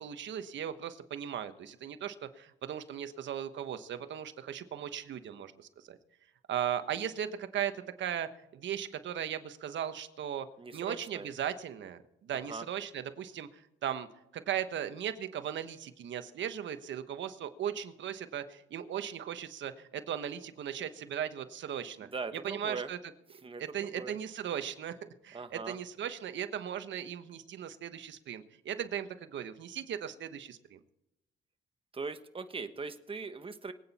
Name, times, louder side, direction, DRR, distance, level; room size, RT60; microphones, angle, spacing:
voice 1, 0.0-6.0 6.5-10.5 10.7-14.1 14.3-22.1 22.4-23.0 23.6-25.0 25.2-30.8, right 9 dB, 70° right, 9 dB, 1.3 m, -37 dB
voice 2, 10.6-11.3 12.5-12.7 22.0-22.9 23.4-24.2 25.3-25.8 31.9-33.7, right 4 dB, 25° right, 9 dB, 1.3 m, -40 dB
23.5 x 9.1 x 4.3 m, 0.84 s
cardioid pair, 90°, 20 cm